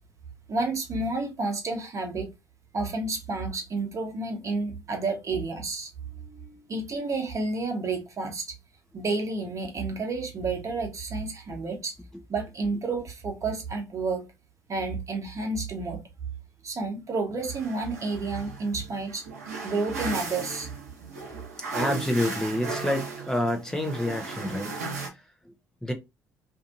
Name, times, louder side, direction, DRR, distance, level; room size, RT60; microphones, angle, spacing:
voice 1, 0.5-2.3 2.7-5.9 6.7-8.5 8.9-12.0 12.3-14.3 14.7-16.0 16.6-19.2 19.6-20.7, right 3 dB, 40° right, 1.1 m, -30 dB
voice 2, 6.1-6.7 21.6-24.8 25.1-25.5 25.8-25.9, left 1 dB, 5° left, 0.7 m, -29 dB
sound 1, 17.4-25.1, right 4 dB, 90° right, 0.8 m, -36 dB
2.7 x 2.5 x 2.5 m
hypercardioid pair, 55°, 8 cm